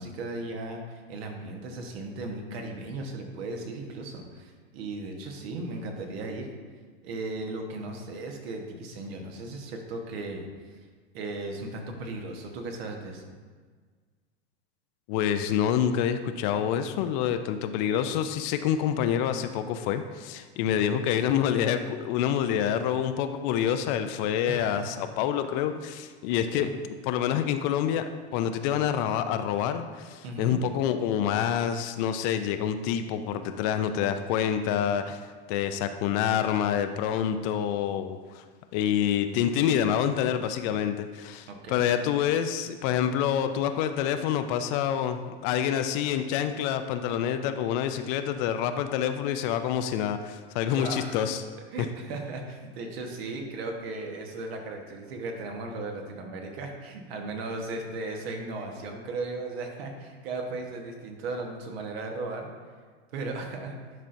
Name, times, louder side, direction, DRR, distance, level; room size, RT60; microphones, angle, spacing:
voice 1, 0.0-6.5 7.0-10.8 11.1-13.3 20.6-21.0 24.5-24.9 26.3-26.7 30.2-30.6 41.5-41.8 50.6-51.1 51.7-62.5 63.1-63.7, right 2 dB, 70° right, 2 dB, 1.3 m, -36 dB
voice 2, 15.1-26.7 27.0-35.2 35.5-38.4 38.7-51.4, left 9 dB, 50° left, 9 dB, 0.5 m, -27 dB
10.5 x 4.3 x 2.6 m, 1.5 s
hypercardioid pair, 120°, 32 cm